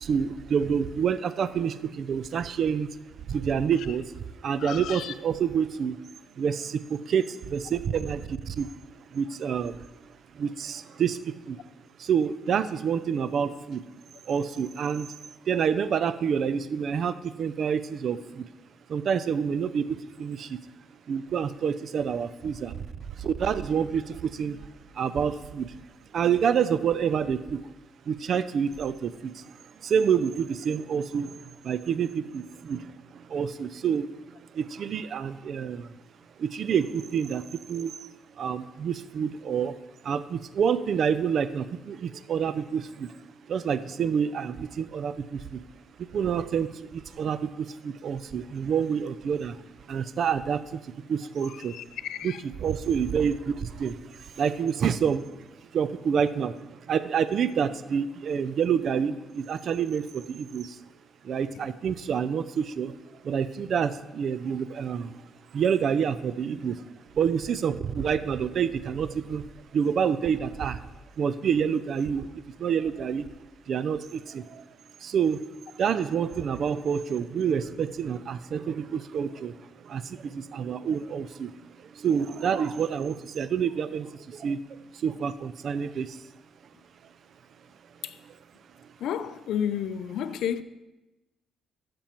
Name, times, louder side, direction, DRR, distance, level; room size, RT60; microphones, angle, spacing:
voice 1, 0.0-2.9 3.3-4.0 4.4-5.9 6.4-8.7 9.1-9.7 10.4-11.2 11.5-11.6 12.0-13.8 14.3-15.1 15.5-18.4 18.9-20.5 21.1-22.7 23.2-24.6 25.0-25.7 26.1-27.6 28.1-29.1 29.8-31.3 31.6-32.8 33.3-34.1 34.6-35.9 36.4-37.4 37.7-37.9 38.4-39.7 40.1-43.1 43.5-45.6 46.1-49.5 49.9-50.6 51.1-51.7 52.2-54.0 54.4-55.2 55.7-56.5 56.9-60.7 61.3-62.9 63.2-65.1 65.5-66.8 67.2-69.4 69.7-70.8 71.2-72.3 72.6-73.3 73.7-74.4 75.0-75.4 75.8-79.5 79.9-80.0 80.3-81.5 82.0-84.1 84.4-84.6 85.0-86.1, right 7 dB, 60° right, 0.5 m, -27 dB
voice 2, 4.6-5.1 51.6-52.4 61.5-61.7 88.0-88.2 89.0-90.6, left 9 dB, 80° left, 0.5 m, -32 dB
13.0 x 6.9 x 4.5 m
cardioid pair, 90°, 0 cm